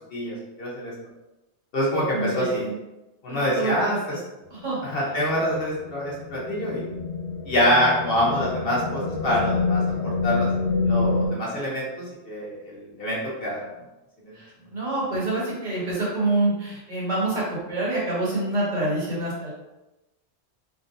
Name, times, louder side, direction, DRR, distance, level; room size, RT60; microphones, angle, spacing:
voice 1, 0.1-0.9 1.7-2.6 3.2-4.0 4.8-6.8 7.5-10.5 10.8-13.6 14.2-14.4, equal, 60° left, -5 dB, 1.1 m, -25 dB
voice 2, 1.9-2.8 3.3-4.2 4.5-4.8 14.3-19.5, right 2 dB, 45° right, -7 dB, 1.4 m, -27 dB
sound 1, 4.5-11.3, left 3 dB, 80° left, 1.1 m, -27 dB
3.7 x 2.3 x 2.6 m, 0.98 s
omnidirectional pair, 1.1 m